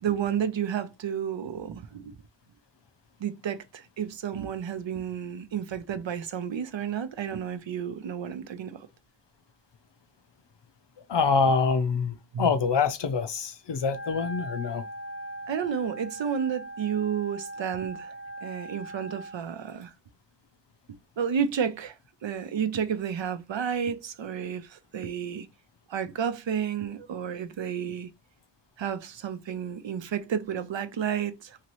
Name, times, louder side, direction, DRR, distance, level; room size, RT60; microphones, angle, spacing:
voice 1, 0.0-2.1 3.2-8.9 12.3-12.5 15.5-18.1 18.4-19.9 21.2-25.5 25.9-28.1 28.8-31.6, right 8 dB, 90° right, 0.6 m, -31 dB
voice 2, 11.1-14.9, left 5 dB, 75° left, 0.6 m, -25 dB
Wind instrument woodwind instrument, 13.8-19.4, right 1 dB, 30° left, 0.6 m, -40 dB
2.9 x 2.8 x 2.9 m
wide cardioid pair, 50°, 43 cm